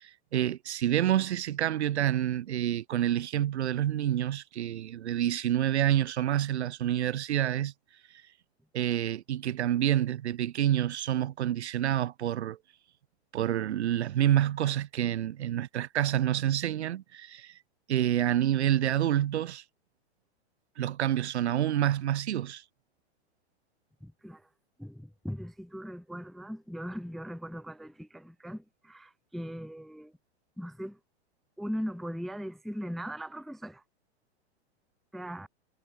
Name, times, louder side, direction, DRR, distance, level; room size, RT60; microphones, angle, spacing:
voice 1, 0.0-7.7 8.7-12.6 13.3-17.5 17.9-19.6 20.8-22.6, right 11 dB, 90° right, 1.1 m, -28 dB
voice 2, 24.0-24.4 24.8-30.1 30.6-31.0 31.6-33.8 35.1-35.5, equal, ahead, 0.3 m, -39 dB
hypercardioid pair, 145°, 33 cm